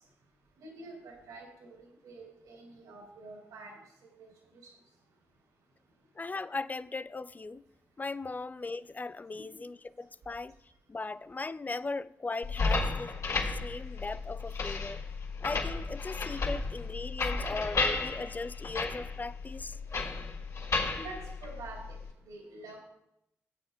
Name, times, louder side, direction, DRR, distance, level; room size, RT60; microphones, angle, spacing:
voice 1, 0.6-3.8 4.0-4.3 20.9-22.0 22.3-22.8, right 3 dB, 75° right, 3.5 m, -47 dB
voice 2, 6.2-7.6 8.0-10.5 10.9-13.2 13.5-15.0 15.4-19.8, left 3 dB, 25° left, 0.6 m, -38 dB
sound 1, 12.4-22.1, left 3 dB, 60° left, 3.8 m, -33 dB
20.0 x 8.5 x 2.3 m
hypercardioid pair, 45°, 6 cm